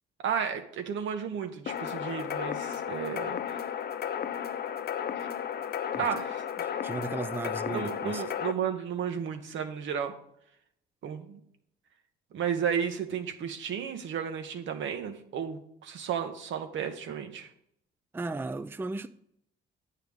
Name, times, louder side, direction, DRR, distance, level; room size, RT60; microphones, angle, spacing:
voice 1, 0.2-3.4 6.0-6.4 6.7-6.8 7.7-10.1 11.0-11.4 12.3-17.5, right 7 dB, 75° right, 1.3 m, -33 dB
sound 1, 1.7-8.5, left 9 dB, 50° left, 0.6 m, -34 dB
voice 2, 6.8-8.2 18.1-19.1, right 3 dB, 10° right, 0.4 m, -35 dB
9.2 x 8.1 x 3.6 m
cardioid pair, 90°, 20 cm